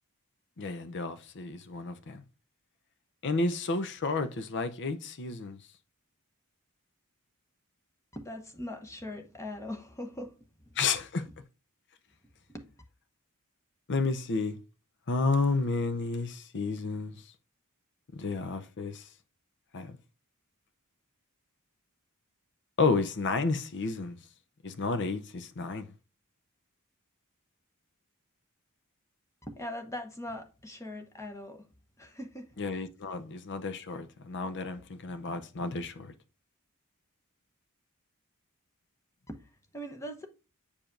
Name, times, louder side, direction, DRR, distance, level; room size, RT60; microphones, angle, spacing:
voice 1, 0.6-2.2 3.2-5.6 10.8-11.3 13.9-14.6 15.1-17.2 18.1-19.0 19.7-19.9 22.8-24.2 24.6-25.9 32.6-36.1, left 3 dB, 55° left, 0.6 m, -31 dB
voice 2, 8.1-10.8 11.2-11.3 12.5-12.7 29.5-31.7 32.0-32.6 33.1-33.2 34.8-34.9 35.7-35.9 39.3-40.3, left 1 dB, 15° left, 0.9 m, -41 dB
8.6 x 4.9 x 2.6 m
head